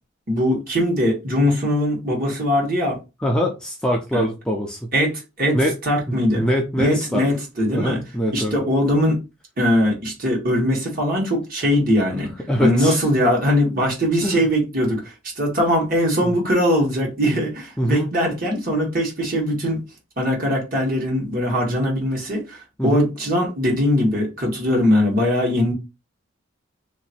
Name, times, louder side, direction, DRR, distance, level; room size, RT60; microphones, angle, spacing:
voice 1, 0.3-3.0 4.1-4.2 4.9-6.5 6.8-8.0 8.3-9.2 9.6-12.3 12.6-19.8 20.2-25.7, equal, 45° right, 1.5 m, -21 dB
voice 2, 3.2-4.8 5.5-5.8 6.3-7.2 7.7-8.6 12.5-13.0 14.2-14.5 16.2-16.4 17.8-18.1 22.8-23.1, equal, 5° left, 0.5 m, -23 dB
2.9 x 2.6 x 4.3 m
head